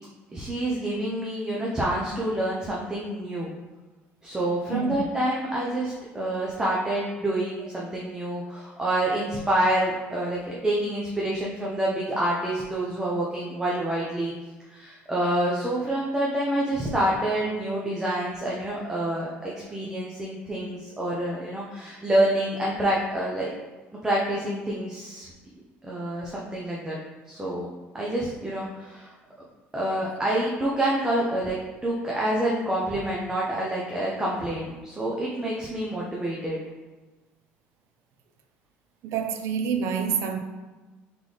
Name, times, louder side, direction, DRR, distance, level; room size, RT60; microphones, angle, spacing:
voice 1, 0.3-3.5 4.2-14.3 14.7-23.5 24.0-25.3 25.8-27.0 27.3-27.7 27.9-29.1 29.7-31.6 31.8-36.6, right 1 dB, 15° right, -5 dB, 0.8 m, -27 dB
voice 2, 4.7-5.1 7.6-7.7 39.0-40.4, right 6 dB, 65° right, 5 dB, 0.5 m, -27 dB
3.8 x 3.7 x 3.3 m, 1.2 s
cardioid pair, 110°, 5 cm